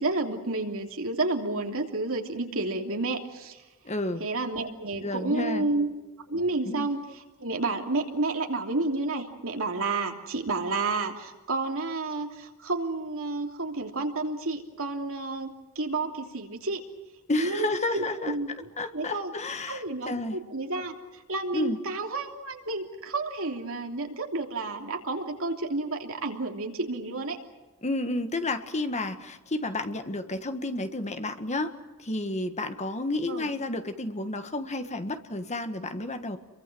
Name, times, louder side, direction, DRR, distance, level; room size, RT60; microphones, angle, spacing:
voice 1, 0.0-3.6 4.2-5.9 6.3-7.0 7.4-16.8 17.4-17.6 17.9-19.3 19.7-20.9 21.3-27.4 33.3-33.5, right 2 dB, 65° right, 3 dB, 3.1 m, -30 dB
voice 2, 3.8-4.3 5.0-5.7 6.6-6.9 17.3-18.3 18.8-20.4 21.5-21.8 27.8-31.7 32.0-36.4, left 2 dB, 30° left, 8 dB, 1.7 m, -31 dB
30.0 x 23.5 x 6.3 m, 1.1 s
head